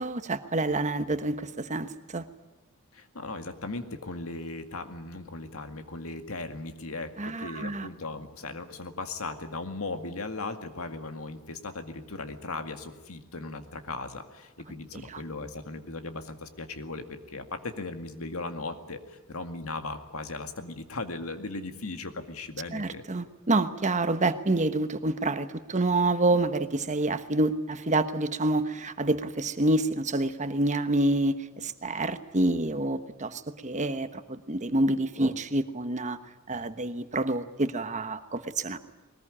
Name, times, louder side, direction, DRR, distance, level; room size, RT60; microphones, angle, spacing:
voice 1, 0.0-2.2 7.2-7.9 15.1-15.2 22.7-36.2 36.5-38.8, right 2 dB, 35° right, 11 dB, 1.2 m, -27 dB
voice 2, 2.9-23.0, left 3 dB, 80° left, 7 dB, 2.0 m, -37 dB
21.0 x 19.5 x 9.9 m, 1.1 s
head